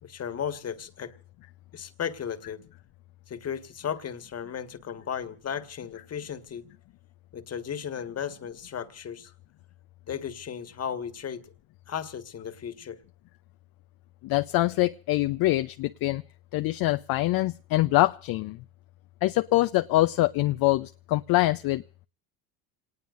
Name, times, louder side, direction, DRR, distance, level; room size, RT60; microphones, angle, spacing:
voice 1, 0.0-1.1 1.7-2.6 3.3-6.7 7.3-9.3 10.1-11.5 11.9-13.0, left 8 dB, 35° left, 1.7 m, -35 dB
voice 2, 14.2-16.2 16.5-18.6 19.2-21.8, left 17 dB, 55° left, 0.7 m, -24 dB
27.0 x 19.5 x 2.6 m
supercardioid pair, 90°, 42 cm